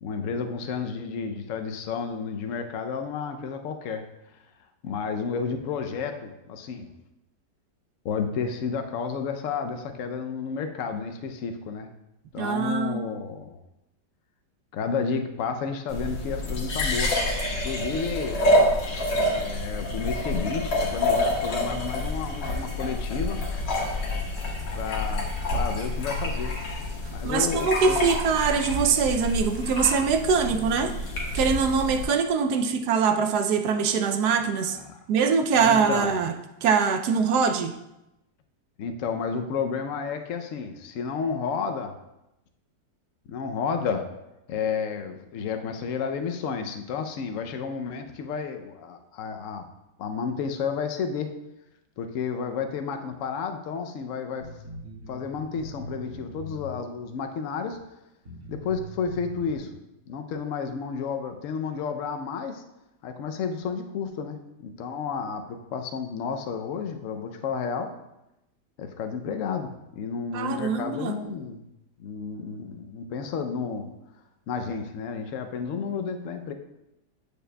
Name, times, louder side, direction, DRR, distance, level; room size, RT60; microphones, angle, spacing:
voice 1, 0.0-4.0 4.8-6.9 8.0-11.9 12.3-13.6 14.7-17.1 17.6-18.4 19.3-23.4 24.7-25.3 25.5-26.5 27.1-28.0 34.7-35.0 35.5-36.1 38.8-41.9 43.3-44.1 44.5-49.7 50.0-51.3 52.0-54.5 55.1-57.8 58.5-59.7 60.1-62.6 63.0-67.9 68.8-71.6 72.0-73.9 74.5-76.5, left 5 dB, 65° left, 6 dB, 0.8 m, -31 dB
voice 2, 12.4-13.0 27.2-30.9 31.3-34.8 35.1-36.3 36.6-37.8 70.3-71.2, right 6 dB, 75° right, 7 dB, 1.0 m, -23 dB
sound 1, 15.9-32.0, left 1 dB, 85° left, 2.1 m, -27 dB
sound 2, 54.4-57.0 57.7-57.8 58.2-59.6, equal, 35° right, 2.3 m, -41 dB
8.9 x 6.6 x 2.2 m, 0.89 s
omnidirectional pair, 1.9 m